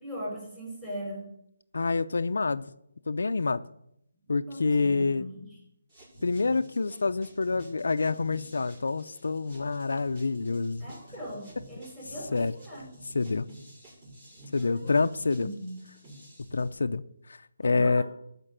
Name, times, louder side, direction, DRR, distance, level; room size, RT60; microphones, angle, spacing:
voice 1, 0.0-1.3 4.2-5.6 10.8-12.9 14.6-15.0 15.3-15.8 17.6-18.0, equal, 10° right, 4.5 m, -40 dB
voice 2, 1.7-2.7 3.1-3.6 4.3-5.2 6.2-10.9 12.3-12.5 13.1-13.5 14.5-15.5 16.5-18.0, left 4 dB, 75° left, 0.5 m, -27 dB
sound 1, 5.9-16.7, equal, 25° right, 6.0 m, -51 dB
12.5 x 5.2 x 9.0 m
hypercardioid pair, 170°, 0 cm